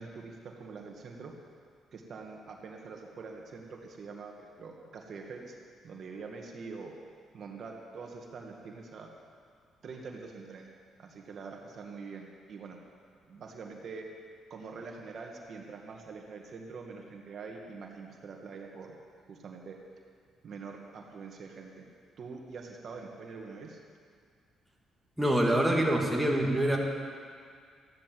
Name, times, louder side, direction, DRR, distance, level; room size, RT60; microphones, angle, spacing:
voice 1, 0.0-1.3 1.9-5.5 5.8-6.9 7.3-9.1 9.8-10.7 11.0-12.8 13.3-14.1 14.5-19.0 19.3-19.8 20.4-21.9 22.2-23.8, right 4 dB, 55° right, 1 dB, 1.8 m, -44 dB
voice 2, 25.2-26.8, right 1 dB, 5° right, -2 dB, 2.4 m, -25 dB
14.0 x 10.5 x 7.7 m, 2.1 s
cardioid pair, 90°, 0 cm